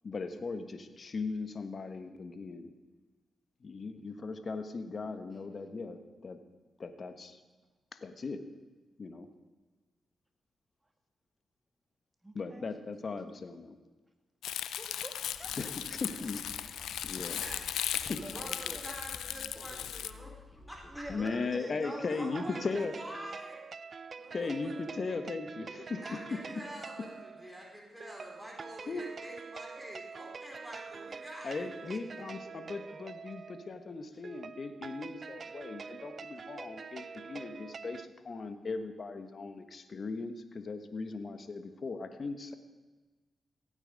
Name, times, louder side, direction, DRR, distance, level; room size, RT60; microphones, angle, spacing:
voice 1, 0.0-2.7 3.6-6.4 6.8-7.4 8.0-8.4 9.0-9.3 12.3-13.7 15.6-17.4 18.1-18.2 21.1-22.9 24.3-26.4 28.9-29.0 31.4-42.5, left 4 dB, 50° left, 9 dB, 1.3 m, -38 dB
voice 2, 12.2-12.7 14.5-15.6 17.4-18.9 20.9-22.5 24.2-24.6 26.4-26.6 27.4-27.6 30.9-31.0 31.9-32.9 34.1-34.2, right 1 dB, 15° right, 4 dB, 2.2 m, -48 dB
Crumpling crinkling, 14.4-20.1, left 10 dB, 85° left, 0.5 m, -37 dB
sound 1, 15.3-21.2, left 3 dB, 30° left, 1.3 m, -53 dB
voice 3, 18.1-21.0 21.8-23.6 24.2-24.7 26.0-31.7, equal, ahead, -2 dB, 3.9 m, -47 dB
sound 2, 22.2-38.1, right 5 dB, 50° right, 0.4 m, -46 dB
16.5 x 8.9 x 5.2 m, 1.3 s
cardioid pair, 60°, 0 cm